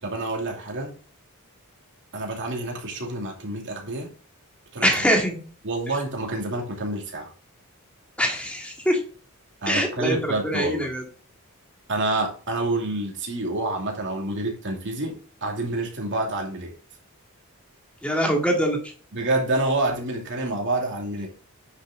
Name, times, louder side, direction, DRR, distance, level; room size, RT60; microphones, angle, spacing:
voice 1, 0.0-1.0 2.1-4.1 4.7-5.0 5.6-7.3 9.6-10.9 11.9-16.7 19.1-21.3, right 2 dB, 55° right, 0 dB, 2.7 m, -28 dB
voice 2, 4.8-5.4 8.2-9.0 9.7-10.2 10.4-11.0 18.0-18.8, equal, 5° left, 0 dB, 2.2 m, -23 dB
9.5 x 6.4 x 3.7 m, 0.39 s
head